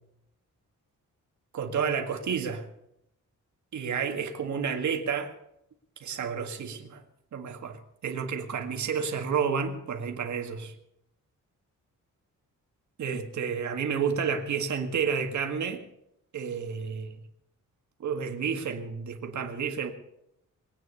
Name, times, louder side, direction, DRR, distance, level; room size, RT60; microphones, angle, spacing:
voice 1, 1.5-2.7 3.7-5.3 6.0-7.0 7.3-10.7 13.0-15.8 16.3-17.2 18.0-19.9, right 6 dB, 65° right, 5 dB, 1.9 m, -30 dB
22.0 x 9.2 x 6.8 m, 0.80 s
wide cardioid pair, 170°, 31 cm